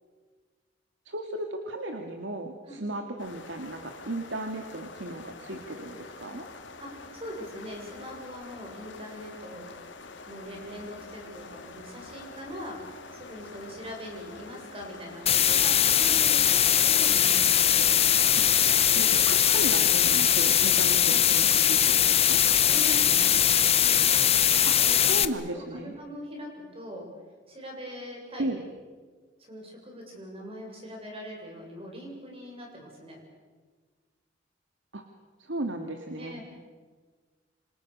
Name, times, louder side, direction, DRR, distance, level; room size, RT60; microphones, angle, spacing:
voice 1, 1.1-6.5 18.4-18.5 18.9-22.4 24.6-24.8 25.1-25.9 28.4-28.6 34.9-35.0 35.4-36.4, right 1 dB, 80° right, 4 dB, 2.2 m, -35 dB
sound 1, 3.2-19.0, left 3 dB, 85° left, 2.7 m, -46 dB
voice 2, 6.8-9.7 10.3-17.9 22.7-23.3 23.7-27.1 27.5-28.5 29.4-33.2 36.2-36.4, equal, 30° right, 1 dB, 7.3 m, -42 dB
sound 2, 15.3-25.3, left 10 dB, 35° left, 0.9 m, -21 dB
28.5 x 26.0 x 6.7 m, 1.5 s
head